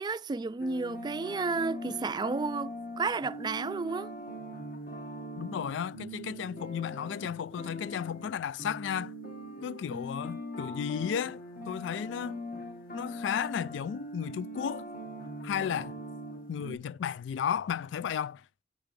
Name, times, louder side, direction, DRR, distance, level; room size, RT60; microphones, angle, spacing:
voice 1, 0.0-4.1, right 4 dB, 25° right, 0.3 m, -32 dB
sound 1, 0.6-16.8, equal, 50° left, 1.5 m, -41 dB
voice 2, 5.4-9.1 9.6-12.4 12.9-14.9 15.4-16.0 16.5-18.4, left 8 dB, 75° left, 0.3 m, -34 dB
8.1 x 6.7 x 3.2 m
head